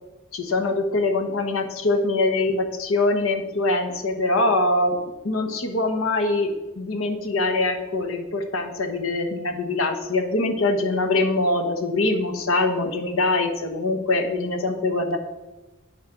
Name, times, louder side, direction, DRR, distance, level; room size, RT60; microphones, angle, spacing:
voice 1, 0.3-4.9 5.2-15.2, left 2 dB, 75° left, 6 dB, 1.2 m, -23 dB
9.4 x 6.3 x 5.8 m, 1.1 s
head